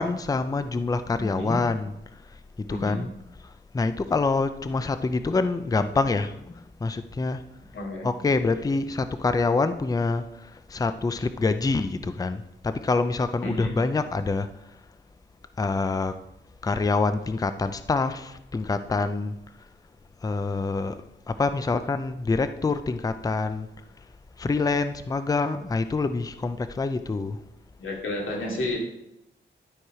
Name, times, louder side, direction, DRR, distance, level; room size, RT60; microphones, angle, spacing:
voice 1, 0.0-1.9 2.6-3.1 3.7-7.4 8.0-14.5 15.6-16.1 16.6-19.3 20.2-20.9 21.3-23.7 24.4-27.4, left 3 dB, 20° left, 11 dB, 0.4 m, -26 dB
voice 2, 1.2-1.6 2.7-3.0 7.7-8.1 13.4-13.7 27.8-28.8, left 1 dB, 80° left, -1 dB, 2.4 m, -31 dB
11.5 x 4.7 x 4.8 m, 0.82 s
wide cardioid pair, 140°, 20 cm